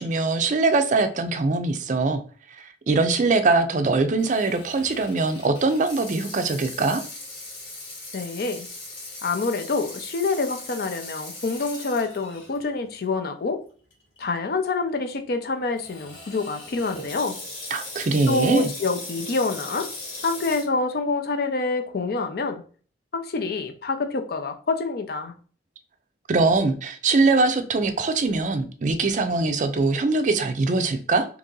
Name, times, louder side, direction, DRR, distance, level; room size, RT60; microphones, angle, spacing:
voice 1, 0.0-2.2 2.6-7.0 17.7-18.7 26.3-31.3, right 3 dB, 45° right, 0.4 m, -22 dB
Water tap faucet / Sink (filling or washing), 4.2-12.6 13.1-13.2 13.9-14.2 15.8-20.7, left 2 dB, 85° left, 1.8 m, -39 dB
voice 2, 8.1-8.7 9.2-13.6 14.2-17.4 18.3-19.9 20.2-22.6 23.1-25.3, left 3 dB, 55° left, 0.5 m, -26 dB
2.9 x 2.7 x 3.7 m
head